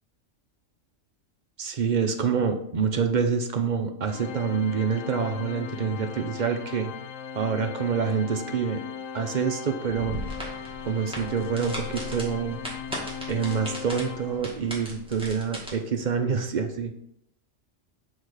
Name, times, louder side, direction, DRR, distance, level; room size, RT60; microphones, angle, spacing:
voice 1, 1.6-6.9 7.3-8.8 9.1-10.2 10.8-12.6 13.3-16.9, right 6 dB, 50° right, 5 dB, 0.6 m, -27 dB
Organ, 4.1-14.9, left 7 dB, 80° left, 1.0 m, -38 dB
sound 1, 9.9-15.7, equal, 5° right, 1.7 m, -38 dB
6.5 x 4.0 x 4.8 m, 0.73 s
omnidirectional pair, 1.3 m